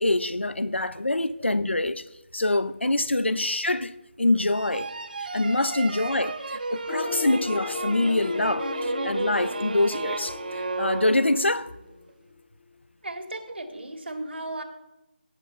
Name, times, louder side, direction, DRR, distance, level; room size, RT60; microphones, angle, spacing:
voice 1, 0.0-2.0 2.3-3.9 4.2-4.9 5.2-11.7, left 2 dB, 85° left, 0.9 m, -25 dB
sound 1, 4.5-11.7, right 3 dB, 50° right, 1.0 m, -33 dB
sound 2, 6.9-12.4, left 4 dB, 20° left, 0.5 m, -36 dB
voice 2, 13.0-14.6, right 2 dB, 70° right, 2.4 m, -35 dB
17.0 x 6.1 x 6.9 m
figure-of-eight pair, 160°, 6 cm